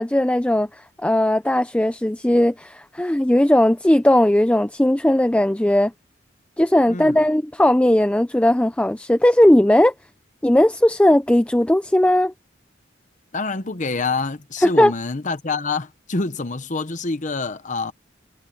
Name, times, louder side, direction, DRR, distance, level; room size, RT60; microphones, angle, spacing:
voice 1, 0.0-5.9 6.6-9.9 10.4-12.3 14.6-14.9, left 1 dB, 5° left, 0.4 m, -17 dB
voice 2, 6.9-7.2 13.3-17.9, left 3 dB, 40° left, 0.9 m, -26 dB
head